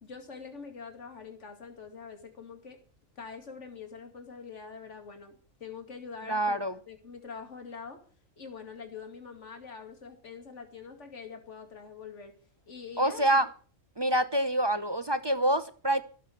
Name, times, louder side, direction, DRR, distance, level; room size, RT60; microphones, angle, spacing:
voice 1, 0.0-2.8 3.2-6.6 6.9-8.0 8.4-12.3 12.7-13.3, left 5 dB, 65° left, 2.6 m, -44 dB
voice 2, 6.3-6.7 13.0-13.5 14.0-16.0, right 1 dB, 25° right, 0.6 m, -26 dB
18.5 x 7.3 x 8.5 m
omnidirectional pair, 1.3 m